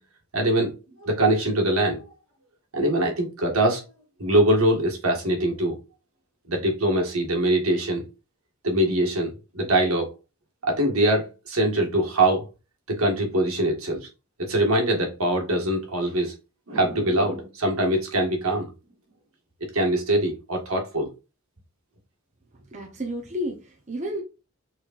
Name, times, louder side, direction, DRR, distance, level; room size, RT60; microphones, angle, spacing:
voice 1, 0.3-0.7 1.0-2.0 2.7-3.8 4.2-5.8 6.5-8.0 8.6-10.1 10.6-12.4 12.9-14.1 14.4-16.3 16.7-18.7 19.7-21.1, right 1 dB, 80° right, 1.6 m, -23 dB
voice 2, 22.5-24.2, equal, 30° right, 0.7 m, -32 dB
6.3 x 3.2 x 2.5 m
head